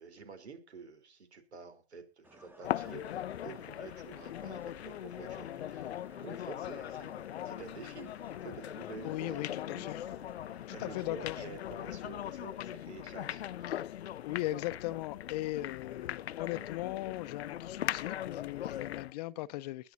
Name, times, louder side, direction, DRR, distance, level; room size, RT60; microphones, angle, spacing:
voice 1, 0.0-9.9 10.7-13.8, right 5 dB, 80° right, 4.1 m, -49 dB
sound 1, 2.2-11.1, right 1 dB, 5° right, 1.3 m, -58 dB
sound 2, 2.6-19.1, left 11 dB, 75° left, 0.6 m, -40 dB
voice 2, 9.0-10.0 10.7-11.4 13.7-13.9 14.2-19.9, left 17 dB, 40° left, 0.8 m, -38 dB
21.5 x 8.9 x 2.8 m
hypercardioid pair, 130°, 32 cm